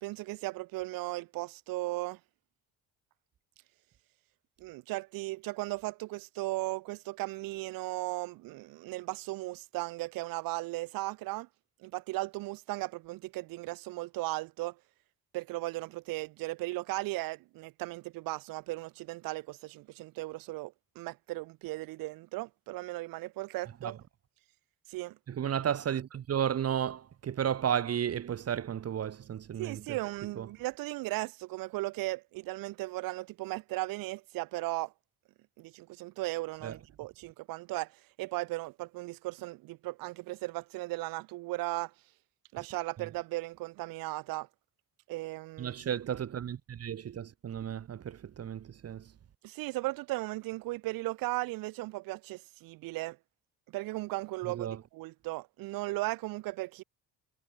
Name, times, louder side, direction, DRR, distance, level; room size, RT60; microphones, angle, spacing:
voice 1, 0.0-2.2 4.6-11.5 11.8-14.8 15.3-24.0 24.9-25.2 29.6-34.9 35.6-41.9 42.5-44.5 45.1-45.8 49.4-53.2 53.7-56.8, right 20 dB, 75° right, 0.5 m, -36 dB
voice 2, 25.3-29.8 30.4-30.5 36.6-36.7 45.6-49.1 54.5-54.8, right 9 dB, 45° right, 0.9 m, -33 dB
cardioid pair, 80°, 35 cm